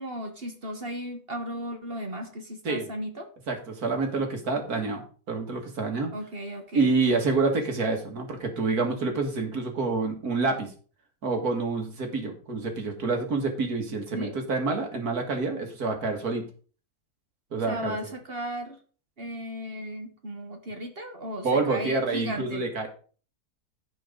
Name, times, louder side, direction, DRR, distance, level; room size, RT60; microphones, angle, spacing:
voice 1, 0.0-3.3 6.1-6.9 14.1-14.3 17.7-18.8 19.2-22.7, equal, 40° right, 5 dB, 1.5 m, -35 dB
voice 2, 3.5-6.1 6.7-10.7 11.2-16.5 17.5-18.0 21.4-22.9, right 3 dB, 75° right, 3 dB, 2.5 m, -27 dB
15.5 x 5.3 x 3.8 m, 0.40 s
omnidirectional pair, 1.6 m